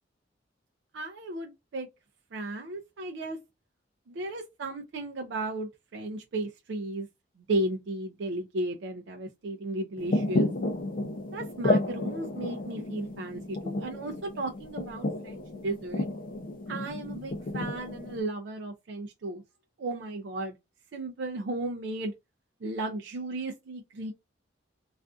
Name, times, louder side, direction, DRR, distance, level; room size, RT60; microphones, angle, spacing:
voice 1, 0.9-1.9 2.3-3.4 4.2-7.1 7.5-10.5 11.3-16.1 16.7-19.4 19.8-20.5 20.9-22.1 22.6-24.1, right 2 dB, 65° right, 0.4 m, -34 dB
sound 1, 10.0-18.2, left 1 dB, 50° left, 0.4 m, -32 dB
2.4 x 2.4 x 2.3 m
head